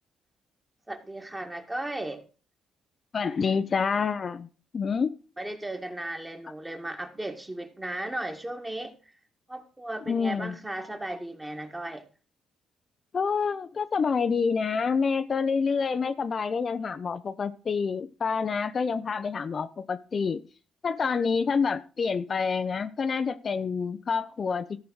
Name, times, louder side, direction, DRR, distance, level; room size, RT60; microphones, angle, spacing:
voice 1, 0.9-2.2 5.4-9.1 9.5-12.0, right 1 dB, 15° right, 1.9 m, -36 dB
voice 2, 3.1-4.5 4.7-5.1 10.1-10.6 13.1-20.4 20.8-24.8, left 5 dB, 45° left, 0.6 m, -27 dB
14.0 x 4.8 x 6.3 m
cardioid pair, 90°, 0 cm